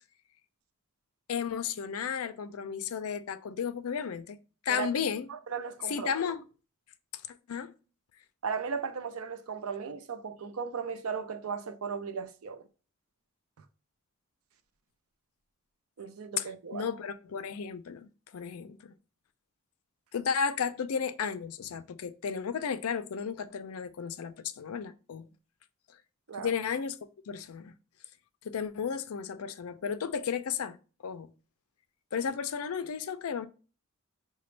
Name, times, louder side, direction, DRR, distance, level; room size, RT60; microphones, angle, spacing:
voice 1, 1.3-4.4 4.6-5.3 5.9-6.4 7.3-7.7 16.4-16.5 16.7-18.9 20.1-25.3 26.4-27.0 27.3-27.7 28.4-30.8 31.0-31.3 32.1-33.5, left 6 dB, 75° left, 0.4 m, -33 dB
voice 2, 5.3-6.1 8.4-12.6 16.0-16.9 26.3-26.5, right 6 dB, 80° right, 0.5 m, -36 dB
5.0 x 2.2 x 3.2 m
head